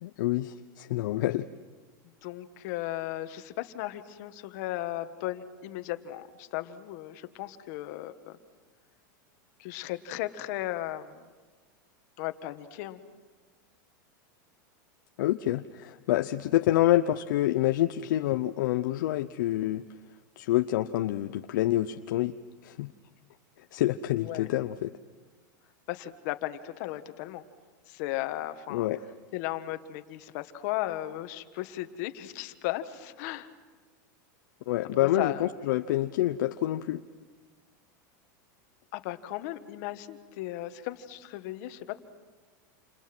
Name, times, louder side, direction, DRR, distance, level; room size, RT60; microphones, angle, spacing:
voice 1, 0.0-1.5 15.2-19.8 20.4-22.3 22.6-22.9 23.7-24.9 28.7-29.0 34.7-37.0, left 14 dB, 70° left, 8 dB, 0.8 m, -27 dB
voice 2, 2.2-8.4 9.6-11.3 12.2-13.0 24.1-24.5 25.9-27.4 27.9-28.9 29.3-33.5 35.0-35.5 38.9-42.0, left 15 dB, 55° left, 10 dB, 1.6 m, -36 dB
29.0 x 28.5 x 6.1 m, 1.4 s
supercardioid pair, 140°, 11 cm